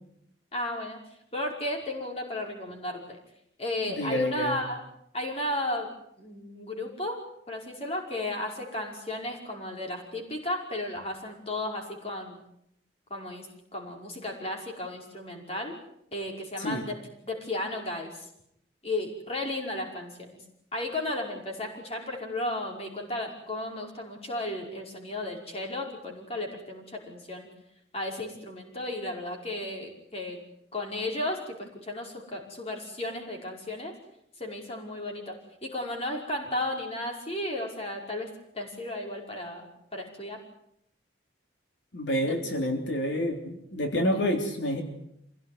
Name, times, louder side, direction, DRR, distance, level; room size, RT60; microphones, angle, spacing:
voice 1, 0.5-1.0 1.3-3.2 3.6-4.8 5.1-5.9 6.2-12.4 13.1-15.8 16.1-17.0 17.2-18.3 18.8-20.4 20.7-27.5 27.9-30.4 30.7-34.0 34.4-40.4 42.2-42.4 44.1-44.2, left 1 dB, 30° left, 1 dB, 5.4 m, -34 dB
voice 2, 3.9-4.6 16.6-16.8 41.9-44.8, equal, 80° left, 4 dB, 3.4 m, -28 dB
27.0 x 17.0 x 9.6 m, 0.77 s
head